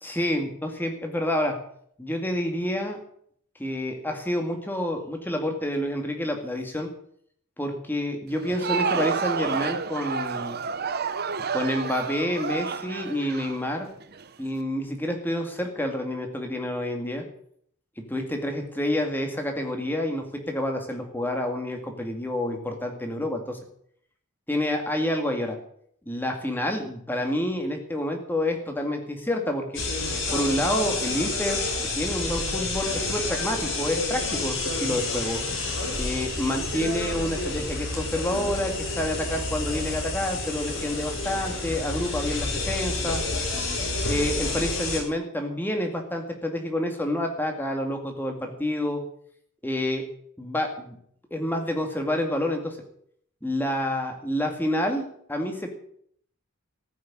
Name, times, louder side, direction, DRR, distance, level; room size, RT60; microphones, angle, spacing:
voice 1, 0.0-1.6 2.0-3.0 3.6-6.9 7.6-10.6 11.5-13.9 14.4-17.2 18.1-23.6 24.5-25.6 26.1-29.8 30.3-31.6 31.9-35.4 36.0-43.2 44.1-49.0 49.6-50.0 50.4-51.0 51.3-52.8 53.4-55.7, left 1 dB, 10° left, 3 dB, 2.1 m, -28 dB
Crowd, 8.3-14.2, right 5 dB, 45° right, 0.8 m, -30 dB
sound 1, 29.7-45.0, left 2 dB, 60° left, 5.0 m, -29 dB
14.5 x 6.5 x 9.7 m, 0.65 s
head